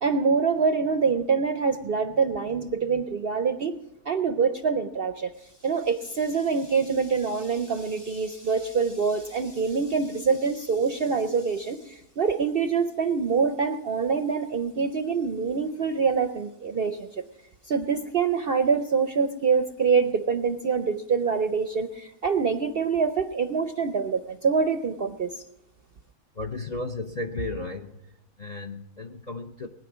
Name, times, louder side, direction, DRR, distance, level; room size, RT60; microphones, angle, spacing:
voice 1, 0.0-3.7 4.0-17.2 17.6-25.3, right 5 dB, 60° right, 9 dB, 0.6 m, -25 dB
voice 2, 26.4-28.0 28.4-29.7, left 2 dB, 45° left, 5 dB, 0.5 m, -34 dB
20.0 x 10.0 x 6.1 m, 0.91 s
omnidirectional pair, 1.6 m